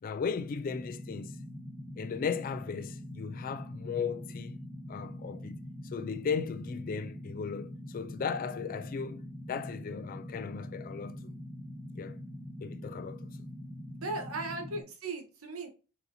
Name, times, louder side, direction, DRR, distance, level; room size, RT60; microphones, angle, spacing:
voice 1, 0.0-1.3 2.0-4.6 4.9-5.6 5.9-11.2 11.9-12.2 12.6-13.3, left 6 dB, 40° left, 0.3 m, -36 dB
sound 1, 0.7-14.8, left 1 dB, ahead, 0.7 m, -44 dB
voice 2, 14.0-15.7, right 2 dB, 80° right, 1.0 m, -37 dB
4.0 x 2.6 x 4.1 m
head